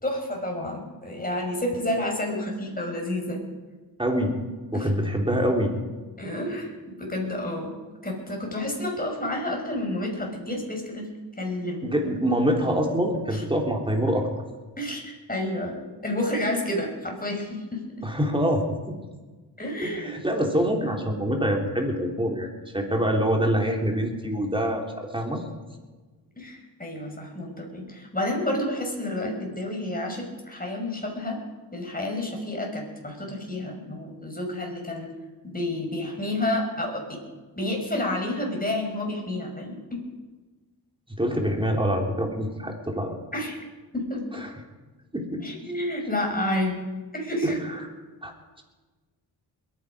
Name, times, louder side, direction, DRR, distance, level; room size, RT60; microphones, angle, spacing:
voice 1, 0.0-3.4 4.7-4.9 6.2-7.7 8.0-11.1 11.4-11.9 13.3-13.4 14.8-18.1 19.6-20.2 26.4-31.4 31.7-35.1 35.4-37.2 37.6-40.0 43.3-43.6 43.9-44.4 45.4-46.8 47.1-47.6, left 1 dB, 20° left, 1 dB, 6.0 m, -30 dB
voice 2, 4.0-4.3 4.7-5.7 11.8-14.3 18.0-19.0 19.8-25.4 41.2-43.2 44.4-44.5 45.1-45.4 47.4-47.5 48.2-48.3, equal, 10° right, 1 dB, 3.7 m, -25 dB
22.0 x 10.5 x 5.2 m, 1.3 s
cardioid pair, 50°, 42 cm